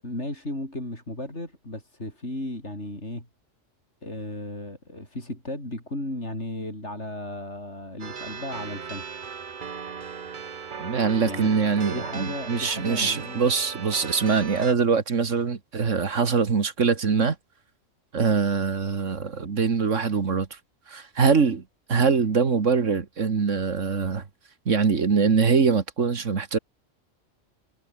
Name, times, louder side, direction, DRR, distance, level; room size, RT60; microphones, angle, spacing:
voice 1, 0.0-3.3 4.0-9.0 11.2-11.5 11.8-13.5, left 1 dB, 60° left, 8.5 m, -35 dB
sound 1, 8.0-14.7, right 6 dB, 40° right, 1.0 m, -37 dB
voice 2, 10.8-17.4 18.1-20.6 20.9-21.6 21.9-24.2 24.7-26.6, right 5 dB, 70° right, 2.1 m, -23 dB
omnidirectional pair, 1.3 m